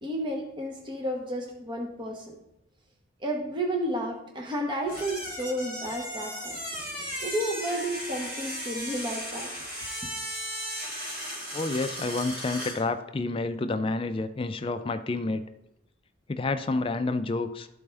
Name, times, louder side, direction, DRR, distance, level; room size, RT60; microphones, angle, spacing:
voice 1, 0.0-2.4 3.2-6.6 7.2-9.5, right 1 dB, 25° right, 1 dB, 0.8 m, -32 dB
sound 1, 4.9-12.8, equal, 45° right, 2.0 m, -36 dB
voice 2, 11.5-15.4 16.3-17.7, left 3 dB, 25° left, 10 dB, 0.3 m, -29 dB
12.5 x 4.3 x 3.4 m, 0.91 s
head